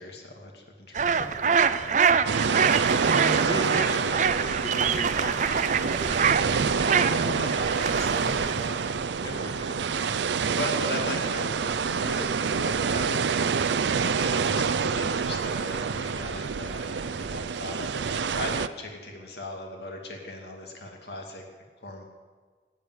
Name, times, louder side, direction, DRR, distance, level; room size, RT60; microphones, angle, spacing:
voice 1, 0.0-1.2 1.6-2.3 7.4-8.8 9.3-9.5 9.9-10.1 10.5-13.2 14.0-21.4 21.8-22.0, left 2 dB, 70° left, 1 dB, 2.5 m, -38 dB
sound 1, 0.9-9.0, right 6 dB, 45° right, 0.5 m, -25 dB
voice 2, 1.0-1.4 3.0-7.5 9.2-10.2, left 1 dB, 20° left, 0 dB, 1.9 m, -37 dB
sound 2, 2.3-18.7, right 5 dB, 90° right, 0.5 m, -27 dB
14.0 x 8.6 x 9.5 m, 1.5 s
head